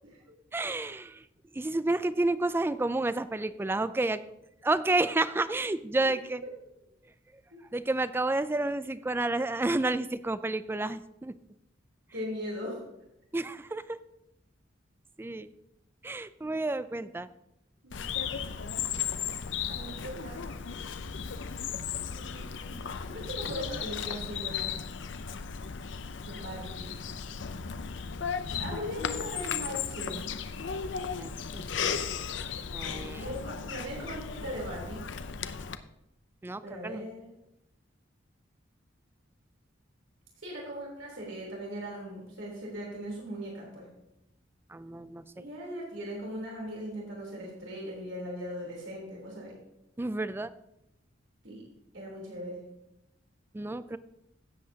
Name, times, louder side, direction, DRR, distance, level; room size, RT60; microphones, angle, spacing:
voice 1, 0.5-1.2 1.6-4.2 4.6-6.4 7.7-11.3 13.3-14.0 15.2-15.5 16.0-17.3 31.2-31.7 32.7-33.2 36.4-37.0 44.7-45.2 50.0-50.5 53.5-54.0, right 2 dB, 10° right, 14 dB, 0.3 m, -30 dB
voice 2, 12.1-12.8 16.8-17.1 17.8-18.0 19.7-20.4 22.1-24.7 26.2-26.9 28.6-30.3 33.2-35.0 36.6-37.3 40.4-43.9 45.4-49.6 51.4-51.6 51.9-52.6, equal, 80° right, -3 dB, 3.4 m, -39 dB
Bird vocalization bird call bird song, 17.9-35.8, left 7 dB, 70° left, 0.5 m, -35 dB
16.0 x 7.7 x 2.8 m, 0.85 s
head